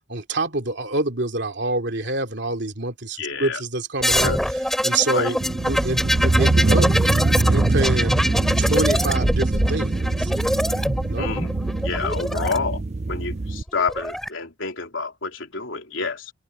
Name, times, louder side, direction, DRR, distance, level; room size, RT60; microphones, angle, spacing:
voice 1, 0.1-6.9 7.4-8.2 8.6-10.3 11.0-11.4, right 2 dB, 60° right, 3.0 m, -26 dB
voice 2, 3.2-3.6 4.2-4.4 5.1-5.4 11.2-11.5 11.8-12.8 13.1-16.3, left 4 dB, 85° left, 3.3 m, -28 dB
sound 1, 4.0-12.6 13.7-14.3, equal, ahead, 2.9 m, -24 dB
sound 2, 5.4-13.6, right 2 dB, 35° right, 0.5 m, -23 dB
head